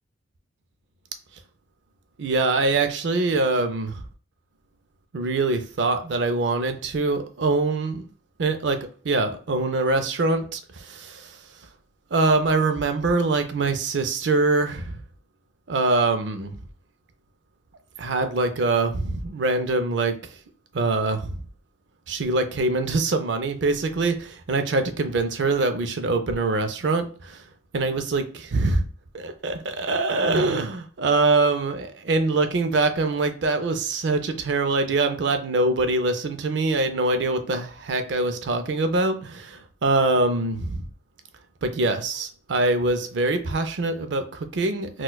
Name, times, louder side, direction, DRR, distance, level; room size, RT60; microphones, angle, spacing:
voice 1, 2.2-4.0 5.1-8.1 8.4-8.8 9.0-11.4 12.1-15.0 15.7-16.5 18.0-20.2 20.7-21.4 22.1-27.1 27.7-28.8 29.1-40.9 41.6-45.0, right 3 dB, 75° right, 8 dB, 0.5 m, -24 dB
4.2 x 2.3 x 2.2 m, 0.40 s
head